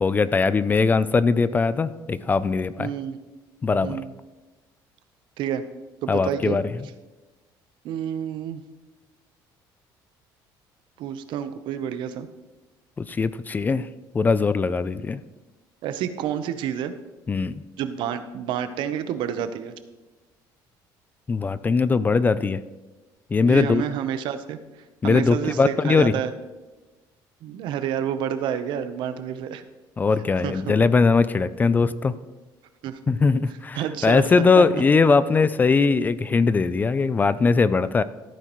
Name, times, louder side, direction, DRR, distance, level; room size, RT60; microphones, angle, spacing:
voice 1, 0.0-2.9 3.6-4.0 6.1-6.6 13.0-13.9 14.1-15.2 17.3-17.6 21.3-22.6 23.3-23.8 25.0-26.1 30.0-32.1 33.1-38.0, left 4 dB, 20° left, 16 dB, 0.3 m, -20 dB
voice 2, 2.8-3.2 3.8-4.1 5.4-5.6 6.0-6.6 7.8-8.6 11.0-12.3 15.8-16.9 17.8-19.7 23.5-24.6 25.0-26.3 27.4-29.6 30.4-30.7 32.8-33.0 33.7-34.3 34.6-34.8, right 9 dB, 65° right, 10 dB, 0.8 m, -29 dB
15.0 x 9.1 x 3.1 m, 1.2 s
cardioid pair, 130°, 9 cm